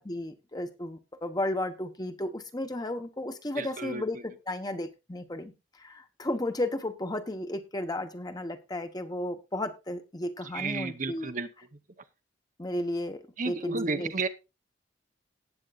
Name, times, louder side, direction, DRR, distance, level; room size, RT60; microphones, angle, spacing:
voice 1, 0.0-5.5 5.8-11.3 12.6-14.1, left 1 dB, 20° left, 8 dB, 1.1 m, -34 dB
voice 2, 3.5-4.2 10.5-11.5 13.4-14.3, right 3 dB, 45° right, 9 dB, 0.9 m, -32 dB
18.0 x 8.1 x 2.5 m, 0.27 s
head